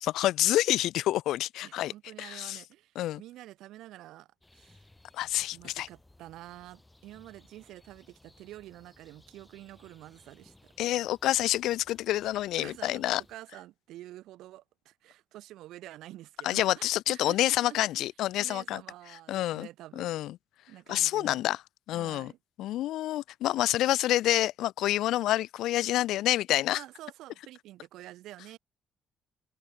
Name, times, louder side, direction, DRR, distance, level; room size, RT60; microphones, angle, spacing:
voice 1, 0.0-1.9 2.2-2.6 3.0-3.2 5.1-5.9 10.8-13.2 16.4-18.8 19.3-19.7 20.0-20.3 20.9-21.6 21.9-22.3 22.6-26.8, left 14 dB, 85° left, 0.3 m, -28 dB
voice 2, 1.6-4.8 5.5-10.7 12.6-18.1 18.4-20.2 20.7-21.4 21.9-22.4 26.7-28.6, right 15 dB, 90° right, 1.6 m, -48 dB
sound 1, 4.4-13.4, left 2 dB, 10° left, 8.0 m, -61 dB
cardioid pair, 90°, 0 cm